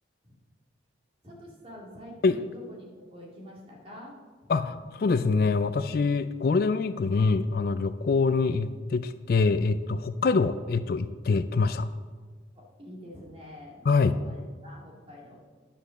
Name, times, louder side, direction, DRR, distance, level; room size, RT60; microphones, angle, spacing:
voice 1, 1.2-4.2 4.4-4.5 12.6-15.4, equal, 30° right, -3 dB, 2.3 m, -46 dB
voice 2, 4.5-11.9 13.9-14.1, left 4 dB, 50° left, 12 dB, 0.3 m, -25 dB
10.0 x 5.2 x 6.4 m, 1.5 s
head